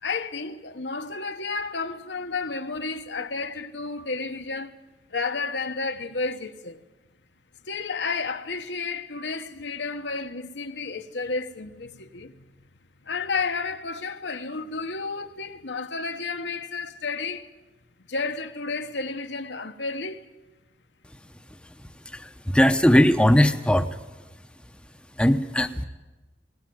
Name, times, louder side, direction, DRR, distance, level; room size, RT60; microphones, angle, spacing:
voice 1, 0.0-4.8 5.1-6.8 7.7-12.4 13.0-17.5 18.1-20.2, left 4 dB, 80° left, 1.3 m, -31 dB
voice 2, 22.5-23.9 25.2-25.8, equal, 5° left, 0.8 m, -19 dB
20.5 x 19.0 x 9.4 m
head